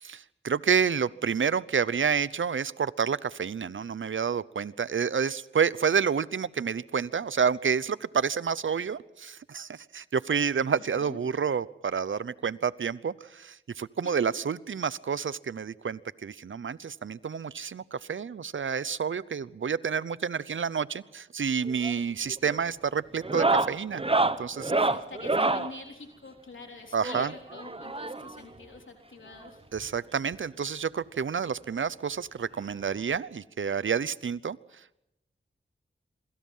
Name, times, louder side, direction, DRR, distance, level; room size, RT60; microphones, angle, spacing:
voice 1, 0.0-24.0 24.4-24.7 26.9-27.3 29.7-35.0, right 6 dB, 75° right, 18 dB, 0.8 m, -29 dB
voice 2, 10.7-11.2 14.0-14.3 24.7-29.6, left 3 dB, 70° left, 2 dB, 3.7 m, -45 dB
sound 1, 21.6-22.0 22.3-22.6 23.2-25.7 27.0-28.4 29.4-29.5 29.8-29.9 30.3-30.4 31.7-31.8 33.1-33.2, right 3 dB, 25° right, 1.1 m, -27 dB
26.5 x 24.5 x 5.6 m, 0.86 s
wide cardioid pair, 60°, 21 cm